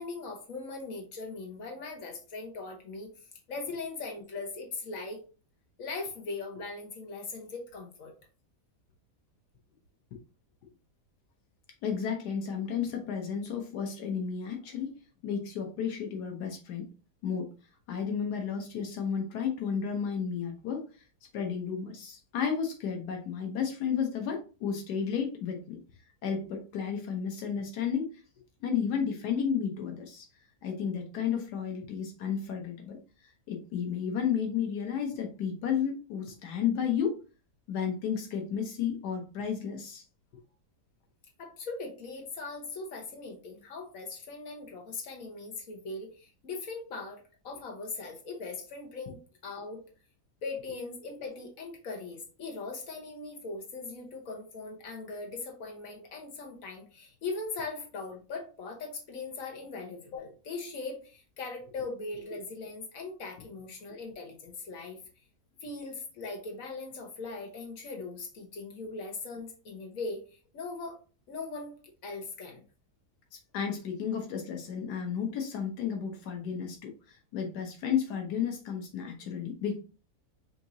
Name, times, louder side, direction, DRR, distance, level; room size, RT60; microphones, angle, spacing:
voice 1, 0.0-3.1 3.5-5.2 5.8-8.1 41.4-49.8 50.4-65.0 65.6-71.0 71.3-72.6, left 3 dB, 60° left, 1 dB, 1.5 m, -40 dB
voice 2, 11.8-15.0 15.2-16.9 17.2-17.5 17.9-20.8 21.3-25.8 26.2-28.1 28.6-30.3 30.6-33.0 33.5-37.2 37.7-40.0 73.5-79.8, left 7 dB, 90° left, 3 dB, 1.4 m, -32 dB
5.8 x 2.8 x 2.7 m, 0.35 s
omnidirectional pair, 1.7 m